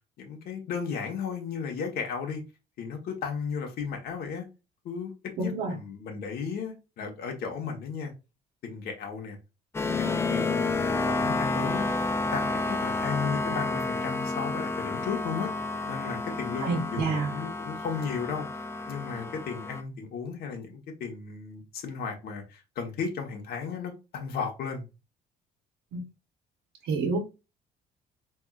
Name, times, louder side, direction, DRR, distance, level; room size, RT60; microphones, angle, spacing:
voice 1, 0.2-2.4 2.8-4.5 4.8-5.1 5.4-8.1 8.6-9.4 10.0-15.5 15.9-18.5 18.8-24.9, left 6 dB, 65° left, 1.3 m, -35 dB
voice 2, 5.4-5.7 16.6-17.3 25.9-26.0 26.8-27.2, right 3 dB, 80° right, 1.2 m, -28 dB
sound 1, 9.7-19.8, left 3 dB, 15° left, 0.4 m, -30 dB
4.5 x 3.4 x 2.4 m
cardioid pair, 110°, 17 cm